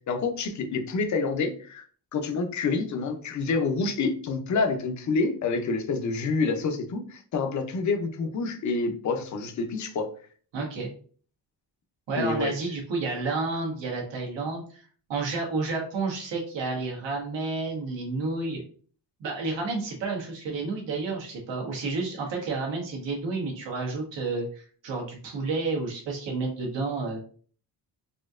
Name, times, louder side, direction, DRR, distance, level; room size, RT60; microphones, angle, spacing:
voice 1, 0.1-1.8 2.1-10.1 12.2-12.5, left 4 dB, 45° left, 6 dB, 0.5 m, -27 dB
voice 2, 10.5-10.9 12.1-18.6 19.2-27.2, right 3 dB, 80° right, -1 dB, 1.3 m, -30 dB
4.2 x 2.7 x 2.4 m, 0.43 s
wide cardioid pair, 180°, 43 cm